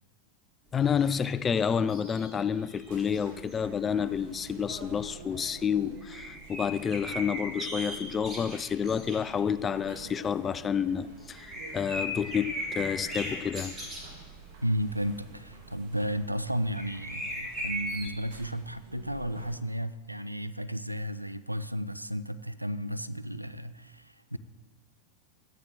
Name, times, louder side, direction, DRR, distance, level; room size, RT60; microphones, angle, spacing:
voice 1, 0.7-13.7, left 7 dB, 20° left, 0.4 m, -29 dB
sound 1, 0.8-3.2 3.5-4.3 5.3-5.7 6.0-9.4 9.7-14.2 15.5-15.6 16.0-16.3 16.6-18.1, equal, 15° right, 3.2 m, -38 dB
sound 2, 2.9-19.6, right 5 dB, 45° right, 1.8 m, -49 dB
voice 2, 14.6-24.4, equal, 90° right, 0.4 m, -33 dB
13.0 x 9.1 x 3.8 m
figure-of-eight pair, 90°, 0 cm